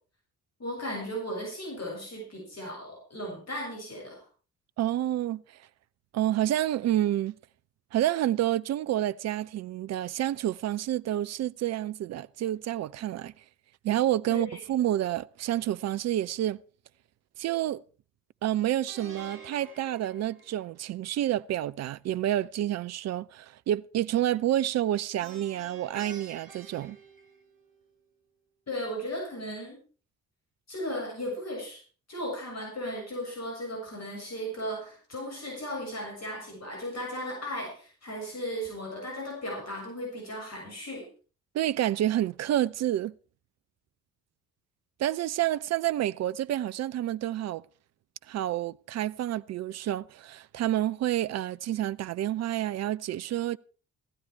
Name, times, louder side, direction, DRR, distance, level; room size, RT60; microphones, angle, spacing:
voice 1, 0.6-4.2 14.3-14.6 28.7-29.8 30.7-31.8 32.1-41.1, equal, 40° left, 7.0 m, -36 dB
voice 2, 4.8-5.4 6.1-7.4 7.9-13.3 13.8-16.6 17.4-17.8 18.4-27.0 41.5-43.1 45.0-47.6 48.3-53.6, right 12 dB, 40° right, 0.5 m, -29 dB
Plucked string instrument, 18.9-21.0 25.2-27.8, right 5 dB, 55° right, 3.0 m, -48 dB
15.0 x 12.5 x 4.6 m
figure-of-eight pair, 40°, 41 cm